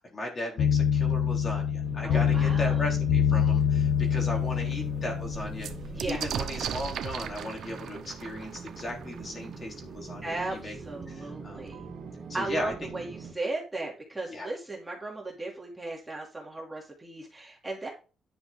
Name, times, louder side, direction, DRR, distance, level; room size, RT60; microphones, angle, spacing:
voice 1, 0.0-5.7 6.1-10.7 11.1-11.7 12.3-12.9 14.3-14.5, left 1 dB, 35° left, 0 dB, 3.8 m, -37 dB
sound 1, 0.6-6.2, left 8 dB, 80° left, 0.8 m, -26 dB
insanity sample, 1.8-13.3, right 4 dB, 45° right, 1.9 m, -44 dB
voice 2, 2.0-2.9 5.9-6.2 10.2-11.9 12.3-17.9, right 2 dB, 10° right, -2 dB, 2.8 m, -36 dB
sound 2, 3.6-3.7 4.1-4.2 4.5-10.0 11.0-11.1 11.4-12.0, right 9 dB, 80° right, 1.0 m, -38 dB
10.5 x 5.9 x 3.7 m, 0.32 s
cardioid pair, 145°, 0 cm